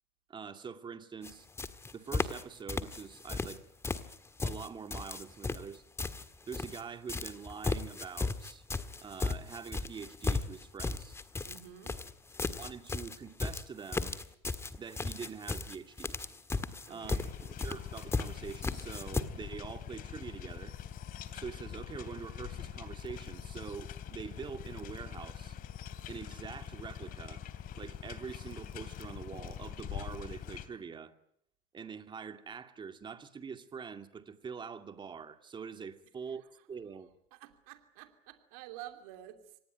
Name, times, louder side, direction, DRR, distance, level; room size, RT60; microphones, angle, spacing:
voice 1, 0.3-1.5 1.9-3.6 4.4-5.8 6.5-8.6 9.0-11.2 12.6-14.2 14.8-16.2 16.9-20.8 21.3-25.6 26.1-27.4 27.7-31.1 31.7-36.4 36.7-37.1, right 6 dB, 25° right, 2.3 m, -44 dB
sound 1, 1.2-1.3 1.6-2.4 2.7-3.6 3.8-6.8 7.1-19.2, left 3 dB, 15° left, 1.6 m, -35 dB
voice 2, 11.4-12.0 16.9-17.3 36.3-36.4 37.3-39.6, right 13 dB, 85° right, 2.9 m, -50 dB
sound 2, 17.0-30.7, left 10 dB, 55° left, 2.9 m, -44 dB
25.5 x 19.0 x 9.2 m
supercardioid pair, 115°, 18 cm